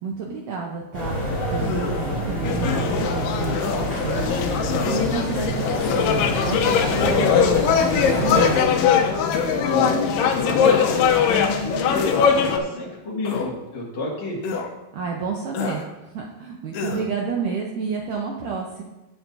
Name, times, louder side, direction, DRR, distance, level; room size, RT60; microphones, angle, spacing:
voice 1, 0.0-4.3 4.8-8.8 14.9-18.8, right 5 dB, 75° right, -1 dB, 2.0 m, -30 dB
sound 1, 0.9-8.6, equal, 10° left, 2.8 m, -27 dB
sound 2, 1.6-2.0 2.6-2.9 3.6-3.9 4.7-5.1 5.8-6.2 6.9-7.3 8.3-8.5 9.3-9.7 10.6-11.1 11.9-12.3 13.2-13.5 14.4-14.7 15.5-15.9 16.7-17.1, left 5 dB, 70° left, 2.3 m, -29 dB
sound 3, 2.4-12.6, left 7 dB, 85° left, 2.9 m, -21 dB
voice 2, 9.5-14.4, left 2 dB, 50° left, -4 dB, 3.1 m, -30 dB
17.0 x 7.2 x 2.7 m, 1.0 s
omnidirectional pair, 4.7 m